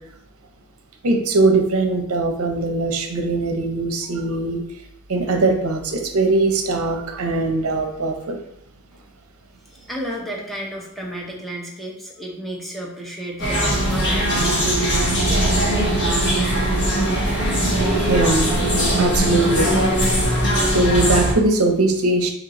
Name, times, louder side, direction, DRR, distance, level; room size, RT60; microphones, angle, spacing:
voice 1, 1.0-4.6 5.1-8.4 18.1-18.5 19.0-19.7 20.7-22.3, right 2 dB, 70° right, 4 dB, 0.7 m, -20 dB
voice 2, 9.7-15.0, equal, ahead, -2 dB, 0.7 m, -32 dB
sound 1, 13.4-21.3, right 1 dB, 50° left, 1.2 m, -20 dB
4.0 x 2.9 x 3.9 m, 0.77 s
head